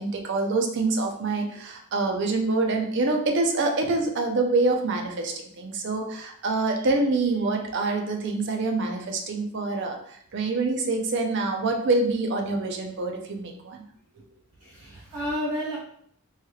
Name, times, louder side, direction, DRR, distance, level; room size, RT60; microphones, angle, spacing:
voice 1, 0.0-13.8 14.2-14.3, right 3 dB, 55° right, 3 dB, 0.5 m, -26 dB
voice 2, 14.6-15.8, equal, 85° right, -9 dB, 1.4 m, -31 dB
3.1 x 3.1 x 2.3 m, 0.65 s
head